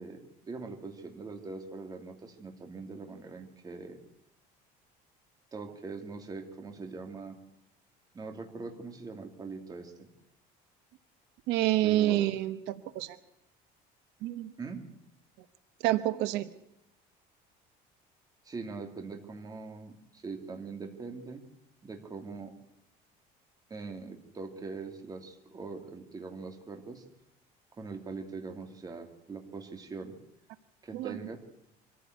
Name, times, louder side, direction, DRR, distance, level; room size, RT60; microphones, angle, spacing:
voice 1, 0.0-4.0 5.5-7.4 8.1-10.1 11.8-12.3 14.6-14.8 18.4-21.4 21.8-22.5 23.7-27.0 27.8-30.1 30.8-31.4, right 4 dB, 20° right, 5 dB, 2.7 m, -42 dB
voice 2, 11.5-13.2 14.2-14.5 15.8-16.5 30.9-31.2, right 15 dB, 80° right, 12 dB, 1.1 m, -28 dB
24.0 x 14.5 x 8.1 m, 0.83 s
cardioid pair, 150°, 17 cm